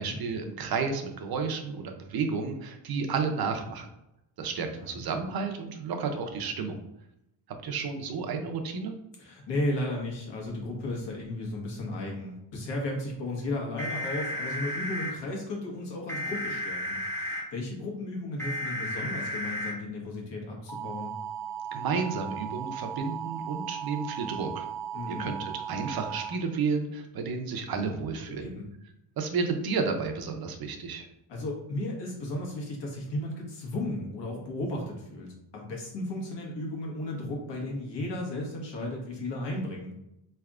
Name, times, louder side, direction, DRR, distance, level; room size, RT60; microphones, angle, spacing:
voice 1, 0.0-3.9 4.4-6.8 7.6-8.9 21.7-24.7 25.1-28.5 29.2-31.1, right 5 dB, 50° right, 5 dB, 0.6 m, -31 dB
voice 2, 9.2-21.1 24.9-25.3 28.3-28.7 31.3-39.9, left 1 dB, 55° left, -1 dB, 1.3 m, -34 dB
sound 1, 13.8-15.1 16.1-17.4 18.4-19.7 20.7-26.3, right 2 dB, 5° left, 0.8 m, -35 dB
4.0 x 3.3 x 2.4 m, 0.84 s
cardioid pair, 125°, 50 cm